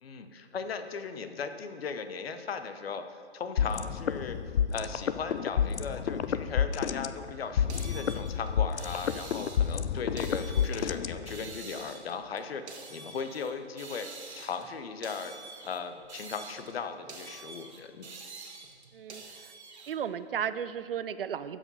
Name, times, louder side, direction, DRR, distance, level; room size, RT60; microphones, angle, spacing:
voice 1, 0.0-4.4 4.7-14.1 14.3-15.3 15.6-18.1, left 5 dB, 60° left, 9 dB, 0.9 m, -37 dB
sound 1, 3.6-11.6, left 8 dB, 80° left, 0.5 m, -30 dB
sound 2, 7.7-9.8 10.2-11.0 11.3-13.5 13.8-14.7 15.0-16.8 17.1-19.9, right 4 dB, 75° right, 1.6 m, -46 dB
voice 2, 19.9-21.6, right 8 dB, 55° right, 14 dB, 0.5 m, -34 dB
12.0 x 5.1 x 5.5 m, 2.1 s
hypercardioid pair, 150°, 33 cm